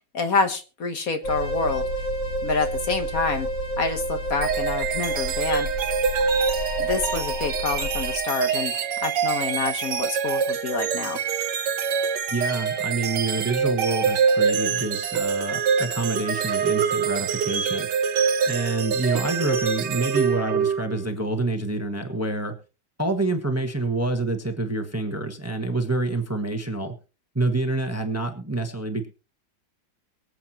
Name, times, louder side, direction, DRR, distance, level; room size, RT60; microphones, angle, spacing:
voice 1, 0.1-1.8 2.4-3.5 3.8-5.7 6.8-11.2, left 4 dB, 55° left, 6 dB, 1.5 m, -27 dB
sound 1, 1.2-8.2, right 1 dB, 75° left, 4.1 m, -29 dB
sound 2, 4.4-21.1, right 6 dB, 70° right, 1.5 m, -25 dB
voice 2, 12.3-17.9 18.5-22.5 23.0-26.9 27.3-29.1, right 2 dB, 10° right, 5 dB, 1.2 m, -27 dB
23.5 x 7.9 x 3.0 m, 0.34 s
omnidirectional pair, 2.0 m